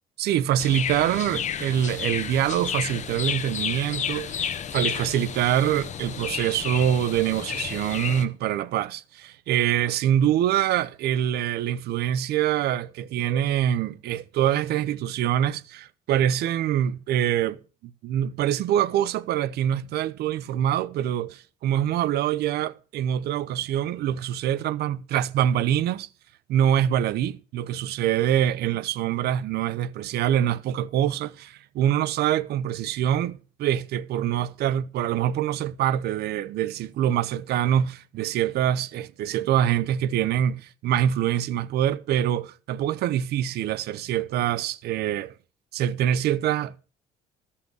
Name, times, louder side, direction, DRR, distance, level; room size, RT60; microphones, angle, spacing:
voice 1, 0.2-17.6 18.0-26.1 26.5-33.3 33.6-45.3 45.7-46.8, right 10 dB, 70° right, 0.8 m, -25 dB
sound 1, 0.6-8.3, left 8 dB, 45° left, 1.2 m, -31 dB
13.5 x 5.8 x 8.1 m
cardioid pair, 110°, 17 cm